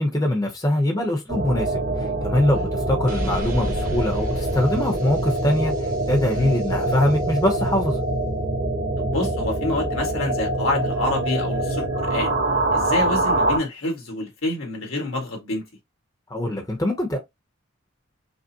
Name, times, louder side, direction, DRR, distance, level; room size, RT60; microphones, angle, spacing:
voice 1, 0.0-1.8 2.2-5.7 6.1-8.0 16.3-17.2, left 1 dB, 15° left, 0.8 m, -22 dB
sound 1, 1.3-13.6, right 2 dB, 65° right, 1.7 m, -24 dB
sound 2, 3.1-6.8, equal, 40° right, 1.0 m, -34 dB
voice 2, 9.0-12.3 12.7-15.7, left 2 dB, 80° left, 1.7 m, -27 dB
5.2 x 2.1 x 2.8 m
head